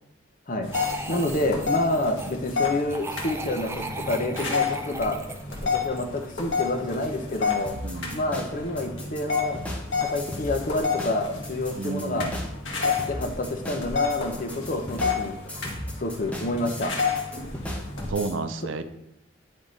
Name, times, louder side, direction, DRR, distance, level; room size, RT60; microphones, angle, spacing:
sound 1, 0.6-18.1, left 5 dB, 75° left, 1.2 m, -30 dB
sound 2, 0.7-2.4 2.9-6.4, right 3 dB, 15° right, 0.4 m, -37 dB
voice 1, 1.1-5.2 5.7-7.7 8.1-9.6 10.0-12.3 12.8-15.4 16.0-16.9, left 1 dB, 45° left, 5 dB, 0.7 m, -28 dB
sound 3, 7.7-18.3, left 1 dB, 5° left, 0.9 m, -37 dB
voice 2, 7.8-8.2 11.8-12.4 18.1-18.8, right 3 dB, 75° right, 10 dB, 0.5 m, -31 dB
8.9 x 3.5 x 3.9 m, 0.84 s
head